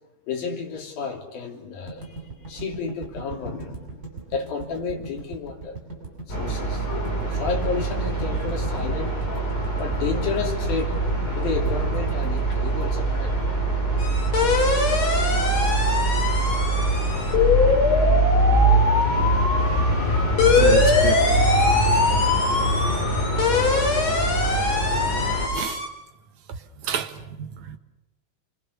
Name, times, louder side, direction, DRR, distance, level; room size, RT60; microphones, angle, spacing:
voice 1, 0.3-4.0 4.3-5.8 6.3-11.0 11.4-13.5 14.4-16.1, left 5 dB, 80° left, 4.9 m, -32 dB
sound 1, 1.9-14.0, right 3 dB, 25° right, 7.8 m, -38 dB
sound 2, 6.3-25.5, right 1 dB, 15° left, 5.3 m, -23 dB
sound 3, 14.0-25.9, left 3 dB, 45° left, 4.5 m, -22 dB
voice 2, 20.3-21.3 23.7-23.8 25.5-25.8 26.5-27.8, right 8 dB, 65° right, 2.3 m, -30 dB
29.0 x 22.5 x 7.0 m
omnidirectional pair, 4.1 m